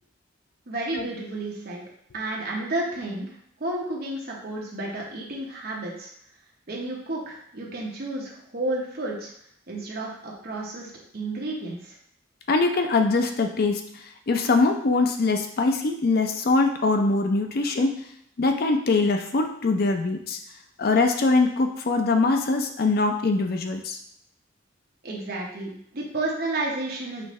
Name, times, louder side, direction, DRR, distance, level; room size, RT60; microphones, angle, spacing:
voice 1, 0.7-1.8 2.1-3.3 3.6-6.1 6.7-9.3 9.7-11.9 25.0-27.2, right 2 dB, 55° right, -2 dB, 1.0 m, -31 dB
voice 2, 12.5-13.8 14.3-18.0 18.4-20.4 20.8-24.0, left 3 dB, 55° left, 5 dB, 0.5 m, -22 dB
5.6 x 2.7 x 3.1 m, 0.68 s
head